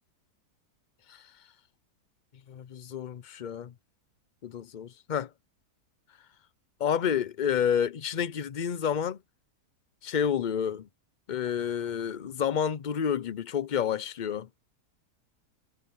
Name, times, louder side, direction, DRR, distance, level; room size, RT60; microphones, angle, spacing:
voice 1, 2.5-3.7 4.4-5.3 6.8-9.2 10.0-10.9 11.3-14.5, left 8 dB, 70° left, 0.4 m, -29 dB
omnidirectional pair, 1.7 m